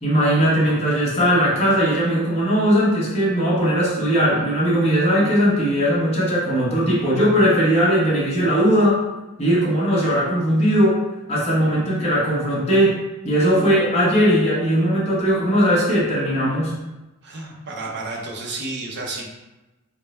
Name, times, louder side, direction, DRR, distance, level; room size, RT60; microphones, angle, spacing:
voice 1, 0.0-9.0 9.4-11.0 11.3-13.0 13.2-16.8, equal, 30° left, -6 dB, 0.9 m, -19 dB
voice 2, 17.2-19.3, right 2 dB, 50° right, -2 dB, 0.6 m, -31 dB
3.5 x 2.0 x 4.2 m, 1.1 s
head